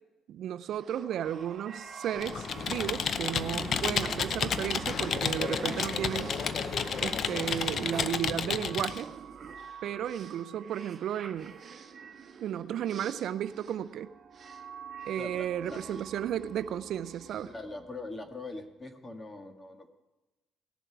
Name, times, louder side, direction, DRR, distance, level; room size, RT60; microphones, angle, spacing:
voice 1, 0.3-6.3 7.0-9.1 9.8-11.6 12.4-14.1 15.0-17.5, right 10 dB, 65° right, 13 dB, 0.4 m, -34 dB
sound 1, 0.7-18.3, right 6 dB, 40° right, 1.3 m, -47 dB
Computer keyboard, 2.2-9.0, left 7 dB, 50° left, 0.6 m, -31 dB
sound 2, 2.5-8.1, right 3 dB, 20° right, 3.6 m, -44 dB
voice 2, 15.2-16.0 17.4-19.9, left 2 dB, 20° left, 5 dB, 1.6 m, -42 dB
18.5 x 7.2 x 4.7 m, 1.1 s
cardioid pair, 110°, 0 cm